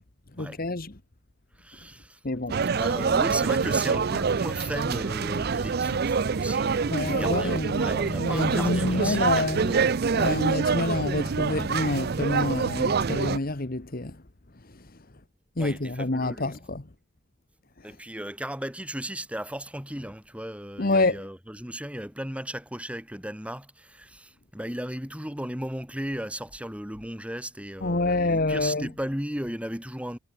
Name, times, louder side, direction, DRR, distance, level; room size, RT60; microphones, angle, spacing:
voice 1, 0.4-0.9 2.2-2.6 6.9-9.7 10.1-14.2 15.6-16.8 20.8-21.2 27.8-28.9, left 2 dB, 45° left, 1.4 m, -27 dB
voice 2, 1.5-2.2 2.7-9.8 10.1-10.4 15.6-16.6 17.8-30.2, equal, 5° right, 6.2 m, -36 dB
sound 1, 2.5-13.4, right 5 dB, 50° right, 0.5 m, -26 dB
head